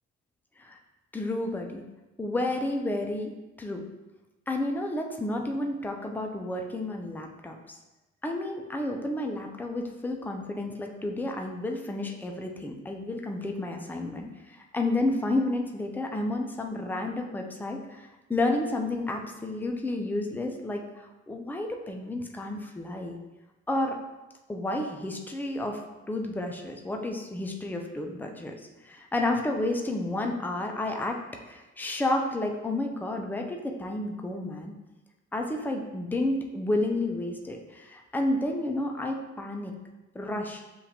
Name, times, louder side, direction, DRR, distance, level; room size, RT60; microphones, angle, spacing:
voice 1, 1.1-1.8 2.2-3.3 3.6-3.9 4.5-7.8 8.2-23.2 23.7-24.0 24.5-25.8 26.1-28.5 28.8-31.2 31.5-34.7 35.3-39.7 40.1-40.6, left 2 dB, 5° left, 2 dB, 0.5 m, -31 dB
7.0 x 2.5 x 2.9 m, 1.1 s
cardioid pair, 90°, 30 cm